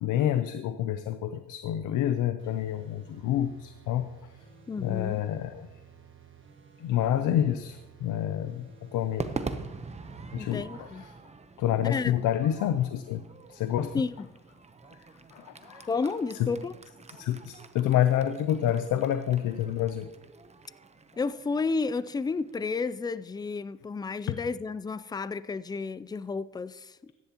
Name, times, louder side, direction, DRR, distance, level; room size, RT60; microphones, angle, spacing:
voice 1, 0.0-4.0 4.8-5.7 6.8-9.3 10.3-11.1 11.6-14.0 15.3-15.9 16.4-16.5 17.1-20.1, left 11 dB, 85° left, 0.6 m, -28 dB
sound 1, 2.4-10.4, right 6 dB, 40° right, 1.4 m, -54 dB
voice 2, 4.7-5.2 10.4-11.1 11.8-12.1 13.9-14.3 15.9-16.7 21.2-27.1, left 4 dB, 15° left, 0.4 m, -32 dB
Crowd / Fireworks, 9.2-23.6, right 4 dB, 20° right, 0.8 m, -44 dB
15.0 x 10.5 x 2.9 m
cardioid pair, 90°, 30 cm